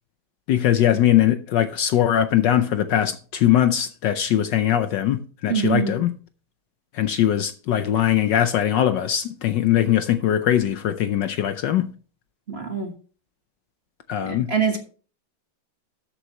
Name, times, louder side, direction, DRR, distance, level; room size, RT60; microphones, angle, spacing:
voice 1, 0.5-6.1 6.9-11.9 14.1-14.5, left 11 dB, 70° left, 1.2 m, -21 dB
voice 2, 5.5-6.0 12.5-12.9 14.3-14.8, right 6 dB, 35° right, 1.4 m, -24 dB
13.0 x 8.1 x 2.9 m
omnidirectional pair, 2.3 m